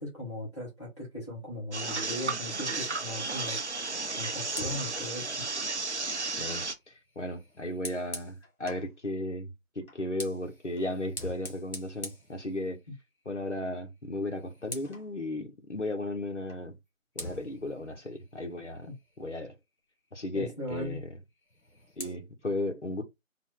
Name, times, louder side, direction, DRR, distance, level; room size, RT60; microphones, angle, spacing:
voice 1, 0.0-3.6 4.2-5.4 20.3-21.0, left 1 dB, 20° left, 1.3 m, -38 dB
sound 1, 1.7-6.7, right 3 dB, 55° right, 0.6 m, -33 dB
Fire, 4.5-8.9 9.8-13.1 13.4-13.7 14.0-15.1 16.5-16.6 17.2-19.5 21.4-22.2, left 1 dB, 75° left, 1.7 m, -45 dB
voice 2, 6.4-12.8 13.2-16.8 17.1-18.9 19.2-19.5 20.1-21.1 22.0-23.0, left 1 dB, 55° left, 1.2 m, -35 dB
4.0 x 2.2 x 3.8 m
figure-of-eight pair, 165°, 42 cm